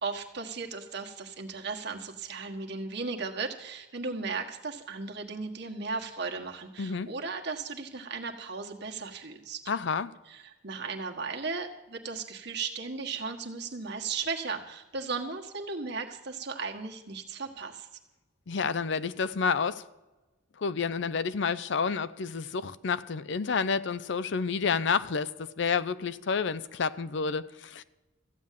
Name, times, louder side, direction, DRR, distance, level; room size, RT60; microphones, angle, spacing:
voice 1, 0.0-9.6 10.3-17.9, right 4 dB, 55° right, 1.5 m, -36 dB
voice 2, 6.8-7.1 9.7-10.1 18.5-19.8 20.6-27.8, left 5 dB, 60° left, 0.5 m, -29 dB
14.5 x 8.9 x 7.5 m
head